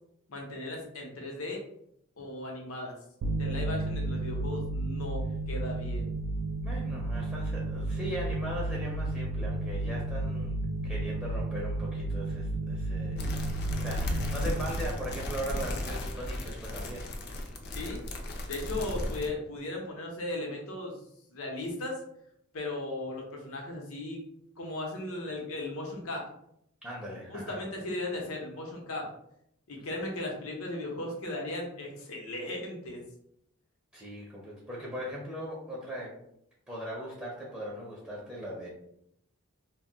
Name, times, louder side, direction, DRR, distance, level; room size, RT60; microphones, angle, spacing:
voice 1, 0.3-1.6 2.2-2.9 3.4-6.1 17.7-18.0 18.5-21.0 21.3-22.0 22.5-24.2 24.6-26.3 27.3-29.1 29.7-33.0, left 2 dB, 80° left, 1 dB, 0.7 m, -37 dB
sound 1, 3.2-16.4, right 2 dB, 85° right, 0.3 m, -33 dB
voice 2, 6.6-13.3 13.8-17.1 26.8-27.6 33.9-36.2 36.7-38.7, equal, 5° right, -5 dB, 0.5 m, -39 dB
sound 2, 13.2-19.3, left 1 dB, 50° left, 0.4 m, -35 dB
2.2 x 2.1 x 3.7 m, 0.75 s
head